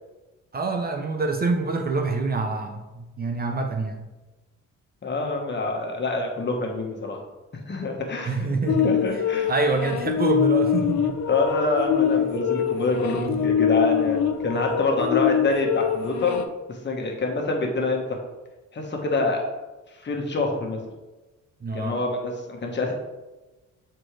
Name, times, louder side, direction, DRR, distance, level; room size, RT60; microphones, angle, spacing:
voice 1, 0.5-4.0 8.3-8.9 9.5-11.2 21.6-22.0, right 3 dB, 30° right, 4 dB, 0.7 m, -26 dB
voice 2, 5.0-7.2 7.7-8.5 8.8-9.5 11.3-16.4 16.7-18.0 18.7-19.4 20.0-20.8 21.7-22.9, left 3 dB, 35° left, 1 dB, 1.4 m, -26 dB
sound 1, 8.7-16.4, left 8 dB, 65° left, 0.6 m, -24 dB
7.6 x 4.4 x 3.3 m, 1.1 s
cardioid pair, 90°, 30 cm